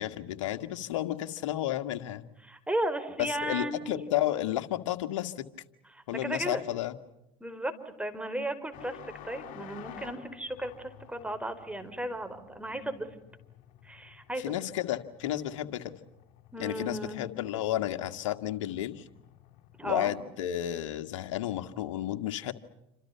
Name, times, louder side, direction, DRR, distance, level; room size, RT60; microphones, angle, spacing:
voice 1, 0.0-2.2 3.2-5.5 6.1-7.0 14.4-15.9 16.6-19.0 19.8-22.5, left 13 dB, 80° left, 8 dB, 1.9 m, -32 dB
voice 2, 2.4-4.0 5.9-6.6 7.4-9.0 9.2-13.1 13.8-14.6 16.5-17.2 19.8-20.1, right 1 dB, 5° right, 9 dB, 4.6 m, -35 dB
sound 1, 8.7-20.2, left 11 dB, 60° left, 3.9 m, -52 dB
29.0 x 26.5 x 5.8 m, 0.85 s
hypercardioid pair, 85°, 16 cm